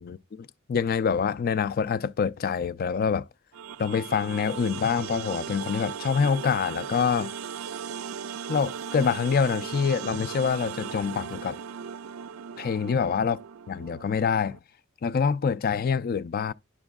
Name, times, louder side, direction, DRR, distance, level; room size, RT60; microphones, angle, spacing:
voice 1, 0.0-3.3 3.8-7.3 8.5-11.6 12.6-13.4 13.7-14.6 15.0-16.5, left 6 dB, 45° left, 0.4 m, -26 dB
sound 1, 3.5-14.6, right 7 dB, 85° right, 0.4 m, -37 dB
9.7 x 6.1 x 2.3 m
head